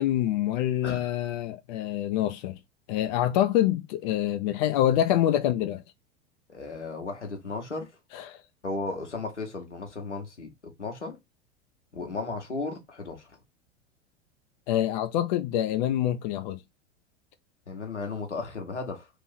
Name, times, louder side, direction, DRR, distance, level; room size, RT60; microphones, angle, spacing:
voice 1, 0.0-2.6 2.9-5.8 8.1-8.4 14.7-16.6, left 12 dB, 40° left, 0.5 m, -26 dB
voice 2, 6.5-8.0 8.6-10.5 10.8-11.2 11.9-13.4 17.7-19.1, left 3 dB, 85° left, 1.1 m, -35 dB
3.0 x 2.7 x 4.0 m
figure-of-eight pair, 85°, 34 cm